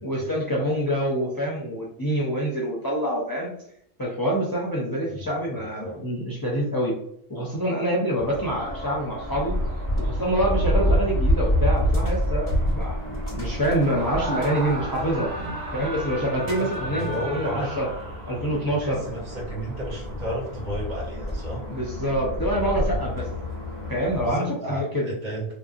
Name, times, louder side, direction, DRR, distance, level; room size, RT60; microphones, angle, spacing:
voice 1, 0.0-3.5 4.0-7.0 7.3-9.6 10.0-15.3 15.7-17.9 18.3-19.0 21.7-23.3 23.9-25.1, equal, 25° left, -4 dB, 0.5 m, -26 dB
voice 2, 5.6-6.0 15.4-15.5 16.6-17.8 18.6-21.7 24.2-25.5, equal, 45° right, -3 dB, 1.0 m, -33 dB
sound 1, 8.2-24.3, equal, 25° right, 1.4 m, -28 dB
Screaming, 13.7-18.5, right 1 dB, 80° right, 1.2 m, -34 dB
3.3 x 2.7 x 2.4 m, 0.72 s
omnidirectional pair, 1.1 m